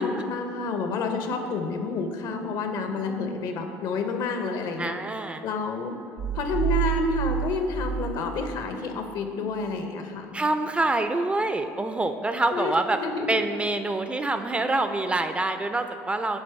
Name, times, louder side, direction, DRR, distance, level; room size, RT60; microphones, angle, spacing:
voice 1, 0.0-4.9 5.4-5.9 6.3-10.4 12.5-13.4, left 4 dB, 65° left, 5 dB, 0.7 m, -29 dB
voice 2, 4.8-5.4 10.3-13.0 13.3-16.4, right 2 dB, 15° right, 8 dB, 0.3 m, -26 dB
sound 1, 6.2-8.8, right 11 dB, 65° right, 0.6 m, -29 dB
8.1 x 3.0 x 4.6 m, 2.4 s
supercardioid pair, 75°, 8 cm